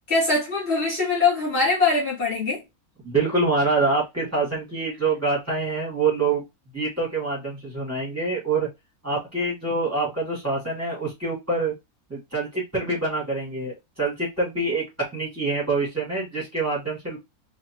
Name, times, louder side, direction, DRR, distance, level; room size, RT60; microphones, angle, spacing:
voice 1, 0.1-2.6, left 3 dB, 45° left, 2.3 m, -22 dB
voice 2, 3.0-6.4 6.7-8.7 9.0-11.7 12.1-14.8 15.1-17.2, right 3 dB, 10° right, 2.3 m, -25 dB
4.1 x 2.9 x 2.8 m
omnidirectional pair, 1.6 m